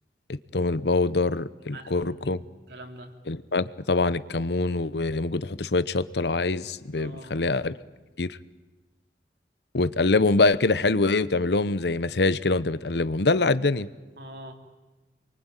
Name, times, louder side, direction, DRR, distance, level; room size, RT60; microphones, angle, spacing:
voice 1, 0.3-2.4 3.3-7.7 8.2-8.4 9.7-13.9, left 3 dB, 70° left, 16 dB, 0.9 m, -24 dB
voice 2, 1.7-3.1 6.9-7.3 14.2-14.5, right 1 dB, 65° right, 4 dB, 3.2 m, -44 dB
27.0 x 23.5 x 9.1 m, 1.2 s
head